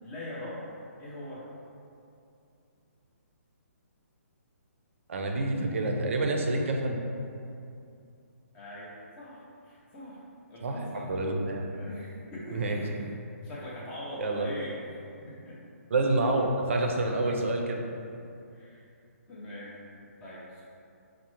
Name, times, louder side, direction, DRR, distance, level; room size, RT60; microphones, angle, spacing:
voice 1, 0.0-0.6 1.0-1.5 8.5-10.2 10.5-11.1 11.7-13.1 13.4-15.6 18.5-18.8 19.3-19.7 20.2-20.6, left 1 dB, 10° left, -6 dB, 0.3 m, -42 dB
voice 2, 5.1-7.0 10.6-11.6 12.5-12.8 14.2-14.5 15.9-17.8, right 2 dB, 55° right, 2 dB, 0.4 m, -28 dB
5.0 x 2.0 x 3.0 m, 2.6 s
hypercardioid pair, 170°, 8 cm